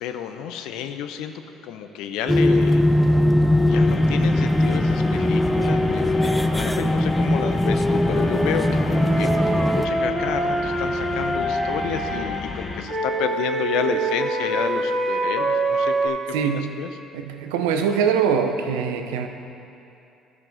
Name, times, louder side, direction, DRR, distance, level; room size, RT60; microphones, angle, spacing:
voice 1, 0.0-2.8 3.5-16.9, left 8 dB, 75° left, 8 dB, 0.5 m, -30 dB
sound 1, 2.3-9.9, left 1 dB, 10° left, 0.4 m, -20 dB
sound 2, 3.7-12.8, left 2 dB, 35° left, 1.0 m, -32 dB
Wind instrument woodwind instrument, 8.1-12.3 12.9-16.1, right 2 dB, 20° right, 2.0 m, -25 dB
voice 2, 16.3-16.7 17.1-19.3, right 7 dB, 80° right, 6 dB, 0.5 m, -23 dB
12.5 x 5.9 x 3.8 m, 2.8 s
hypercardioid pair, 60°, 0 cm